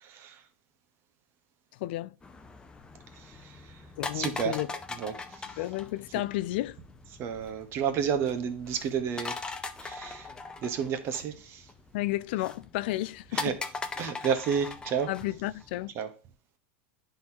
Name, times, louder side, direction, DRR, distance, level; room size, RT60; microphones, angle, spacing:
voice 1, 0.0-0.4 4.1-4.6 5.0-5.2 7.2-9.3 9.8-10.3 10.6-11.6 13.3-13.5 14.0-15.1 16.0-16.1, right 7 dB, 45° right, 1.1 m, -30 dB
voice 2, 1.8-2.1 4.0-4.7 5.6-6.8 11.9-13.6 15.1-15.9, left 17 dB, 65° left, 0.3 m, -32 dB
sound 1, 2.2-15.9, left 3 dB, 15° left, 0.7 m, -41 dB
10.5 x 4.0 x 2.8 m
hypercardioid pair, 110°, 6 cm